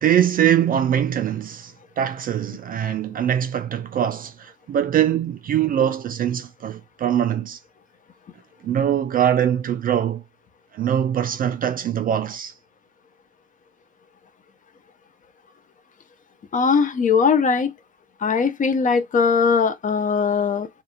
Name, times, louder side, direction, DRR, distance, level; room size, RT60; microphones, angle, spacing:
voice 1, 0.0-7.6 8.6-10.2 10.7-12.5, right 9 dB, 30° right, 0.4 m, -22 dB
voice 2, 16.5-17.7 18.2-20.7, left 5 dB, 25° left, 0.5 m, -20 dB
2.4 x 2.3 x 2.8 m
figure-of-eight pair, 55°, 30 cm